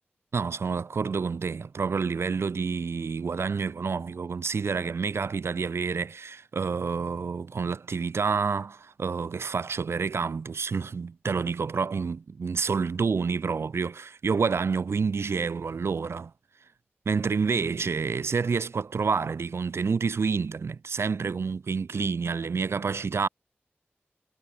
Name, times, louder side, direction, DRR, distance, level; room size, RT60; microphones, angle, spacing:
voice 1, 0.3-16.3 17.0-23.3, right 5 dB, 80° right, 3.2 m, -28 dB
wide cardioid pair, 65°, 4 cm